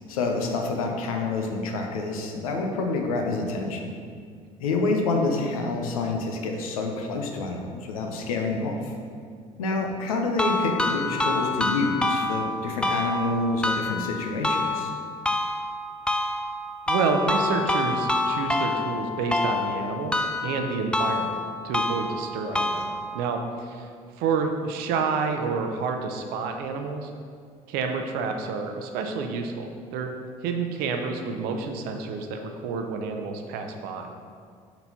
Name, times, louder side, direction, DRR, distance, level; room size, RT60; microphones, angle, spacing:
voice 1, 0.1-3.9 4.6-8.9 9.6-14.9 22.4-22.6, left 3 dB, 75° left, 3 dB, 0.6 m, -27 dB
sound 1, 10.4-23.4, left 2 dB, 5° left, 0.3 m, -27 dB
voice 2, 16.9-20.2 20.4-21.4 21.6-23.9 24.2-27.1 27.7-30.1 30.4-34.1, right 5 dB, 60° right, 5 dB, 0.6 m, -29 dB
4.5 x 4.0 x 5.3 m, 2.1 s
figure-of-eight pair, 55°, 18 cm